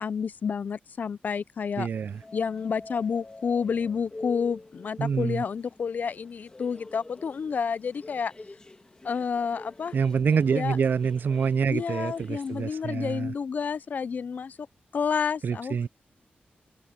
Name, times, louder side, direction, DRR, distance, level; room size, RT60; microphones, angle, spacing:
voice 1, 0.0-1.9 2.3-8.3 9.0-9.9 10.6-10.8 11.7-14.6 14.9-15.9, left 6 dB, 50° left, 0.3 m, -30 dB
voice 2, 1.8-2.2 5.0-5.4 9.9-13.3 15.4-15.9, right 6 dB, 60° right, 0.4 m, -26 dB
sound 1, 2.0-13.2, left 2 dB, 25° left, 2.2 m, -47 dB
wide cardioid pair, 175°, 4 cm